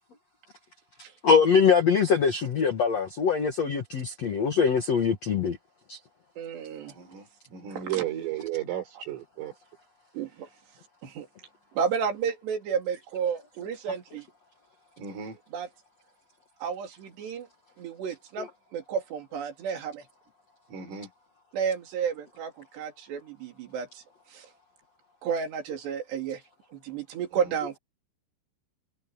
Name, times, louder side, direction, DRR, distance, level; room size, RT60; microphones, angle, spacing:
voice 1, 1.2-5.6 5.9-6.0, left 6 dB, 60° left, 1.8 m, -23 dB
voice 2, 6.4-7.0 7.8-8.0 8.9-9.0 10.1-10.5 11.0-11.3 11.7-14.2 15.5-15.7 16.6-17.5 17.8-20.0 21.5-24.0 24.3-24.5 25.2-26.4 26.7-27.8, right 7 dB, 60° right, 4.8 m, -32 dB
voice 3, 7.5-9.5 15.0-15.4 20.7-21.1, right 11 dB, 80° right, 7.6 m, -33 dB
omnidirectional pair, 5.8 m